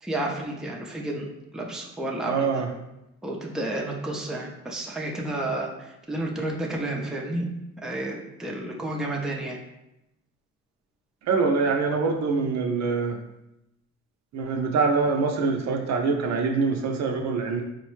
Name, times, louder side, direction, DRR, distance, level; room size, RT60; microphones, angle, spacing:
voice 1, 0.0-2.6 3.2-7.5 7.8-9.6, right 1 dB, ahead, -1 dB, 0.5 m, -31 dB
voice 2, 2.3-2.7 11.2-13.2 14.3-17.6, right 4 dB, 65° right, 3 dB, 0.5 m, -24 dB
3.9 x 2.1 x 3.0 m, 0.89 s
cardioid pair, 90°, 30 cm